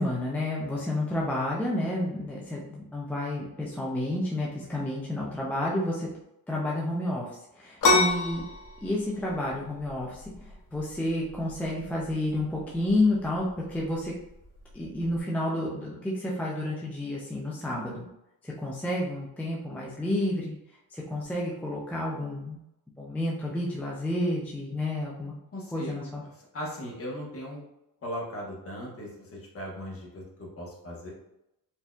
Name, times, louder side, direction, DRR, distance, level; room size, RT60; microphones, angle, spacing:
voice 1, 0.0-6.1 6.5-7.3 7.6-8.4 8.8-14.1 14.7-18.1 18.4-20.6 20.9-22.6 23.0-25.3 25.7-26.2, left 1 dB, 5° left, -4 dB, 0.4 m, -30 dB
sound 1, 7.8-15.2, left 3 dB, 55° left, 0.8 m, -30 dB
voice 2, 25.5-27.6 28.0-31.1, equal, 35° left, -3 dB, 1.1 m, -38 dB
4.3 x 2.6 x 2.3 m, 0.85 s
cardioid pair, 145°, 38 cm